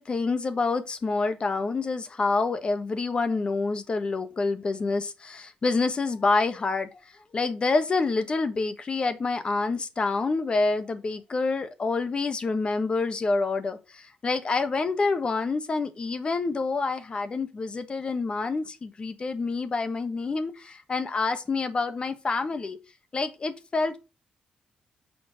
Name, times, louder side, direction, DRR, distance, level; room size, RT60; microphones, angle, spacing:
voice 1, 0.0-7.0 7.3-22.8 23.1-24.0, left 3 dB, 40° left, 1.3 m, -27 dB
6.4 x 4.5 x 6.4 m
cardioid pair, 95°, 3 cm